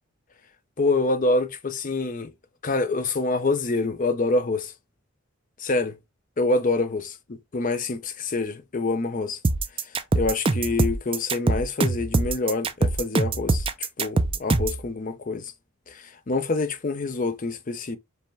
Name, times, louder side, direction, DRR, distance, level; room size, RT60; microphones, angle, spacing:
voice 1, 0.8-2.3 2.6-4.7 5.6-6.0 6.4-9.4 10.1-15.5 15.9-18.0, left 3 dB, 35° left, 0.5 m, -26 dB
sound 1, 9.4-14.8, right 3 dB, 25° right, 0.3 m, -23 dB
5.3 x 2.2 x 3.2 m
head